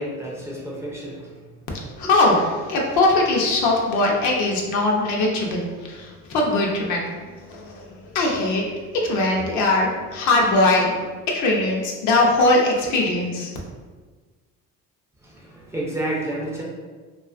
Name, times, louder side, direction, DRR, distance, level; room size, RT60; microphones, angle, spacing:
voice 1, 0.0-1.4 15.2-16.6, right 1 dB, 10° right, -4 dB, 0.4 m, -30 dB
voice 2, 1.7-8.7 8.9-13.5, left 2 dB, 75° left, -1 dB, 0.6 m, -21 dB
2.3 x 2.3 x 2.4 m, 1.4 s
cardioid pair, 115°, 29 cm